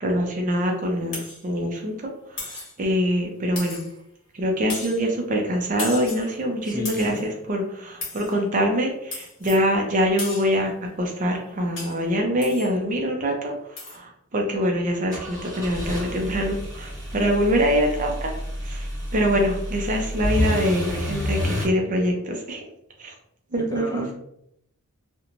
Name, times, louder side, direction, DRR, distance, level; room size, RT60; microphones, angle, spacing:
voice 1, 0.0-3.8 4.3-10.7 11.0-18.3 18.6-18.9 19.1-22.6 23.0-23.1 23.5-24.1, equal, 35° right, 2 dB, 0.4 m, -24 dB
sound 1, 1.1-1.4 2.4-2.8 3.6-4.1 4.7-5.0 5.8-6.3 6.8-7.2 8.0-8.3 9.1-9.7 10.2-10.6 11.8-12.1 12.4-12.7 13.8-14.0, left 3 dB, 55° left, 1.1 m, -35 dB
voice 2, 6.6-7.2 23.6-24.1, equal, 15° left, -2 dB, 0.5 m, -33 dB
sound 2, 15.1-21.7, equal, 15° right, 1.1 m, -29 dB
2.9 x 2.1 x 2.5 m, 0.76 s
head